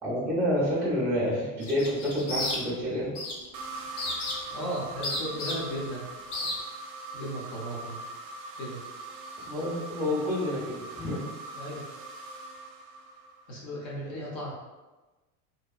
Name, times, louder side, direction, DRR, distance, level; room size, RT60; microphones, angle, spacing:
voice 1, 0.0-3.1 9.4-11.2, equal, 5° right, -6 dB, 0.7 m, -28 dB
sound 1, 1.6-2.9 3.2-3.5 4.0-4.6 5.0-5.9 6.3-6.5, left 2 dB, 85° left, 0.8 m, -32 dB
sound 2, 3.5-13.5, right 2 dB, 60° right, 0.5 m, -42 dB
voice 2, 4.5-6.1 7.1-8.0 8.5-8.8 11.6-11.8 13.5-14.5, equal, 40° left, -4 dB, 0.8 m, -35 dB
2.8 x 2.2 x 2.3 m, 1.2 s
supercardioid pair, 125°, 43 cm